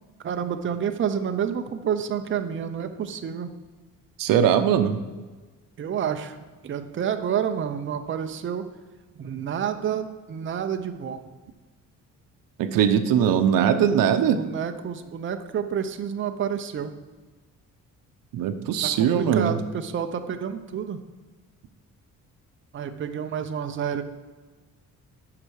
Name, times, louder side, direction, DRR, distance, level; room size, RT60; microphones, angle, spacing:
voice 1, 0.2-3.5 5.8-6.4 6.6-8.7 9.2-11.2 13.3-13.4 14.1-16.9 18.8-21.0 22.7-24.0, right 8 dB, 35° right, 7 dB, 0.7 m, -29 dB
voice 2, 4.2-5.0 12.6-14.4 18.3-19.6, right 8 dB, 80° right, 9 dB, 0.8 m, -21 dB
8.5 x 5.8 x 6.3 m, 1.3 s
cardioid pair, 125°, 33 cm